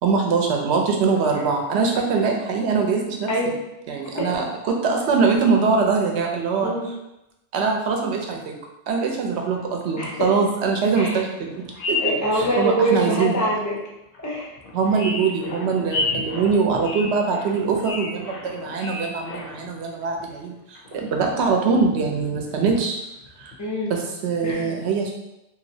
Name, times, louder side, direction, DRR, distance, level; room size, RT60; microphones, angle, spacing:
voice 1, 0.0-3.3 3.9-6.7 7.5-8.5 8.9-11.6 11.9-13.3 14.7-23.0 23.4-23.5 23.9-25.1, right 5 dB, 65° right, 1 dB, 0.8 m, -23 dB
sound 1, 9.6-9.7 10.0-10.1 11.0-11.1 11.5-12.8 13.3-13.4 14.1-14.2 14.6-19.8 20.0-20.3 20.7-21.4 21.7-22.8 23.2-23.5, left 3 dB, 60° left, 0.7 m, -31 dB
voice 2, 10.0-10.3 11.0-11.2 12.0-13.8 14.2-14.5 23.6-24.0 24.4-24.7, right 1 dB, 25° left, -4 dB, 0.4 m, -24 dB
3.0 x 2.7 x 2.6 m, 0.91 s
omnidirectional pair, 1.3 m